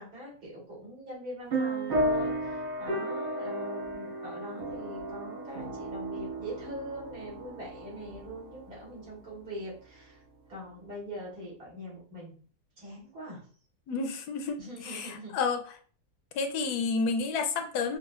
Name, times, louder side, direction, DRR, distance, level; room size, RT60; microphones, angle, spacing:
voice 1, 0.0-10.2 10.5-12.3 12.8-13.4 14.6-15.4, equal, 65° right, -5 dB, 2.2 m, -43 dB
sound 1, 1.5-9.6, right 1 dB, 40° right, 1.5 m, -34 dB
voice 2, 13.9-15.6 16.3-18.0, left 4 dB, 80° left, 6 dB, 1.1 m, -30 dB
4.8 x 2.3 x 2.3 m, 0.42 s
omnidirectional pair, 1.7 m